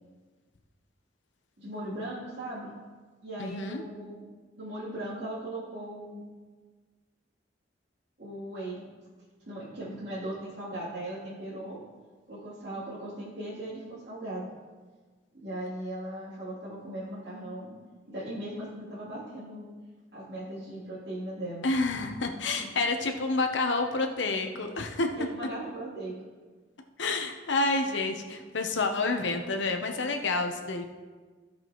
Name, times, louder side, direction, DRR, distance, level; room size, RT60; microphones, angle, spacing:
voice 1, 1.6-2.7 3.2-4.2 4.6-6.2 8.2-8.9 9.4-11.8 12.3-14.5 15.4-17.7 18.1-19.7 20.1-21.7 25.2-26.1, right 1 dB, 65° right, -10 dB, 3.1 m, -38 dB
voice 2, 3.4-3.8 21.6-25.1 27.0-30.9, left 3 dB, 90° left, 5 dB, 0.9 m, -29 dB
15.5 x 6.1 x 3.1 m, 1.4 s
head